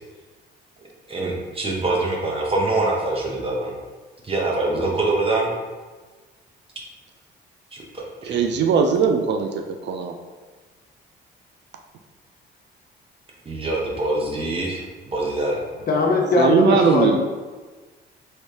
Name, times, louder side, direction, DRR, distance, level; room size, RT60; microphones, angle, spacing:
voice 1, 1.1-3.7 4.2-5.6 7.7-8.4 13.5-15.6, right 2 dB, 30° right, -2 dB, 0.8 m, -24 dB
voice 2, 8.2-10.1 16.4-17.2, right 6 dB, 60° right, 4 dB, 0.4 m, -20 dB
voice 3, 15.9-17.2, left 3 dB, 50° left, 1 dB, 0.7 m, -19 dB
3.2 x 3.1 x 2.8 m, 1.3 s
cardioid pair, 90°, 20 cm